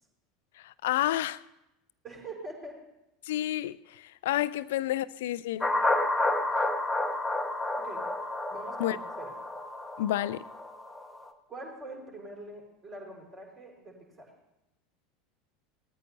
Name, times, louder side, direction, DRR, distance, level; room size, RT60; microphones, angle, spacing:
voice 1, 0.8-1.4 3.3-3.8 4.2-5.7 8.8-9.0 10.0-10.4, left 14 dB, 60° left, 0.4 m, -29 dB
voice 2, 2.0-2.8 7.8-8.0 8.5-9.3 11.5-14.3, right 2 dB, 25° right, 4.3 m, -44 dB
sound 1, 5.6-11.2, left 2 dB, 10° left, 1.1 m, -30 dB
19.0 x 13.0 x 2.8 m
figure-of-eight pair, 75°, 0 cm